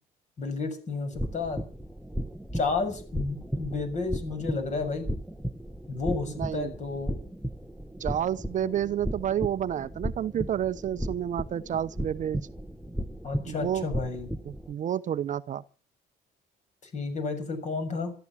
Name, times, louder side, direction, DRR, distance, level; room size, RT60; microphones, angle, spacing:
voice 1, 0.4-1.6 2.5-5.1 5.9-7.1 8.6-8.7 13.2-14.3 16.8-18.1, left 3 dB, 45° left, 6.9 m, -31 dB
sound 1, 1.1-14.7, equal, ahead, 1.0 m, -36 dB
voice 2, 6.4-6.7 8.0-12.4 13.5-13.9 14.5-15.6, right 10 dB, 50° right, 0.8 m, -30 dB
15.0 x 13.0 x 7.3 m
cardioid pair, 110°, 17 cm